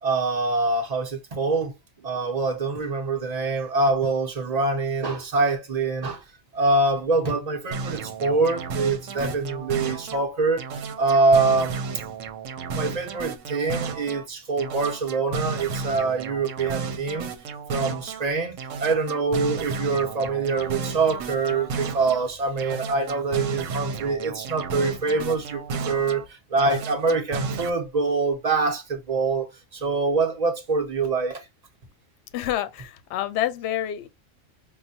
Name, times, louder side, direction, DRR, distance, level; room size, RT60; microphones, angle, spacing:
voice 1, 0.0-1.7 2.0-6.2 6.5-10.6 11.0-11.8 12.7-17.3 17.7-31.4, right 3 dB, 35° right, 0.9 m, -24 dB
sound 1, 7.7-10.3 10.6-14.3 14.6-18.2 18.6-22.2 22.6-26.3 26.6-27.7, right 4 dB, 80° right, 1.0 m, -33 dB
voice 2, 32.3-34.1, left 12 dB, 65° left, 0.8 m, -28 dB
5.5 x 2.2 x 2.7 m
omnidirectional pair, 1.3 m